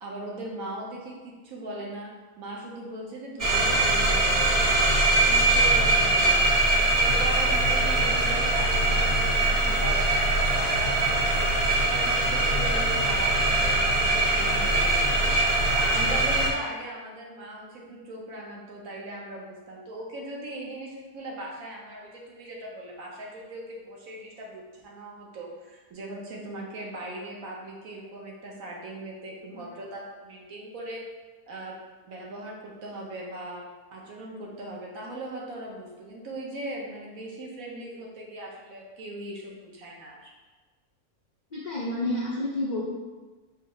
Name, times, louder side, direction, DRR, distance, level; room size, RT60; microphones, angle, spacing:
voice 1, 0.0-2.1 2.4-4.4 5.3-11.4 11.9-15.4 15.7-31.0 31.5-31.7 32.1-33.6 33.9-40.3, right 1 dB, 70° right, -2 dB, 1.2 m, -39 dB
sound 1, 3.4-16.5, right 2 dB, 45° right, 0.5 m, -22 dB
voice 2, 41.5-42.8, left 1 dB, 60° left, -6 dB, 0.4 m, -29 dB
4.6 x 2.1 x 4.7 m, 1.3 s
omnidirectional pair, 1.6 m